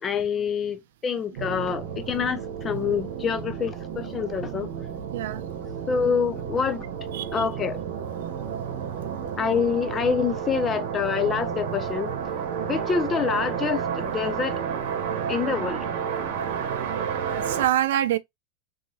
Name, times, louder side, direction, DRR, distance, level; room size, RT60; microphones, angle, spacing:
voice 1, 0.0-4.7 5.9-6.9 7.3-7.8 9.4-12.1 12.6-14.6 15.3-15.9, left 6 dB, 20° left, 0.4 m, -26 dB
sound 1, 1.4-17.7, right 7 dB, 60° right, 0.9 m, -31 dB
voice 2, 16.3-16.9 17.3-18.2, right 12 dB, 80° right, 0.4 m, -27 dB
2.8 x 2.7 x 2.6 m
supercardioid pair, 155°, 0 cm